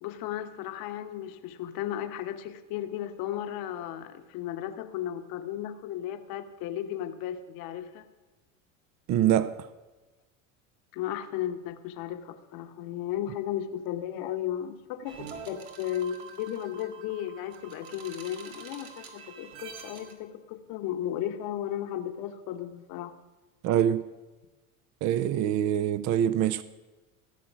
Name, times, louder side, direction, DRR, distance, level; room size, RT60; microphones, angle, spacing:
voice 1, 0.0-8.0 10.9-23.1, left 11 dB, 55° left, 1.0 m, -35 dB
voice 2, 9.1-9.5 23.6-24.0 25.0-26.6, right 10 dB, 45° right, 0.5 m, -24 dB
sound 1, 15.1-20.1, right 6 dB, 85° right, 1.9 m, -46 dB
15.0 x 6.2 x 6.0 m
supercardioid pair, 105°, 41 cm